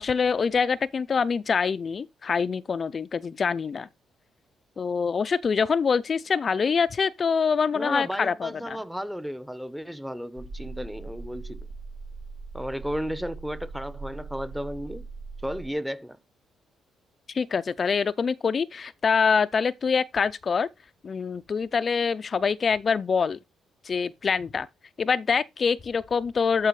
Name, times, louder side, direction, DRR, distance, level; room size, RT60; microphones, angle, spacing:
voice 1, 0.0-3.9 4.8-8.8 17.3-20.7 21.0-23.4 23.8-24.7 25.0-26.7, left 5 dB, 40° left, 0.4 m, -25 dB
voice 2, 7.7-11.7 12.5-15.1 15.4-16.2, equal, 5° right, 0.8 m, -34 dB
sound 1, 10.4-15.7, right 3 dB, 70° right, 1.6 m, -40 dB
12.5 x 4.6 x 3.2 m
cardioid pair, 90°, 0 cm